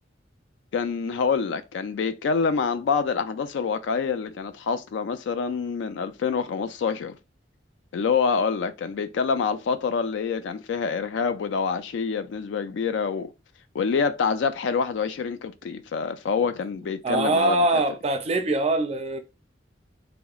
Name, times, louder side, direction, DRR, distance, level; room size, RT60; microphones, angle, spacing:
voice 1, 0.7-7.2 7.9-13.3 13.7-17.6, left 5 dB, 75° left, 0.3 m, -26 dB
voice 2, 17.0-19.2, right 2 dB, 35° right, 0.4 m, -23 dB
2.8 x 2.1 x 2.3 m
head